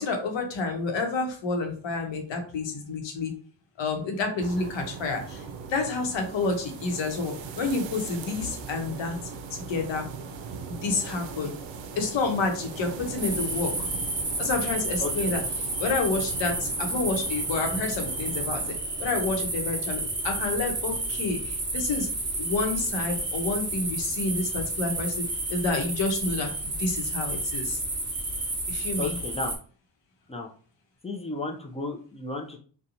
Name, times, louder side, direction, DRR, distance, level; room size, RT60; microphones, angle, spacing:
voice 1, 0.0-3.3 3.8-5.4 5.7-9.2 9.5-10.0 10.7-11.5 12.0-13.9 14.4-18.6 19.0-22.1 22.4-27.8 28.7-29.2, left 3 dB, 75° left, 3 dB, 0.9 m, -29 dB
sound 1, 4.4-18.8, right 5 dB, 75° right, 0.5 m, -40 dB
sound 2, 13.2-29.5, right 2 dB, 25° right, 1.0 m, -31 dB
voice 2, 15.0-15.3 29.0-29.5 30.3-30.5 31.0-32.6, left 3 dB, 15° left, 2 dB, 0.4 m, -33 dB
2.8 x 2.2 x 2.6 m, 0.43 s
cardioid pair, 80°, 46 cm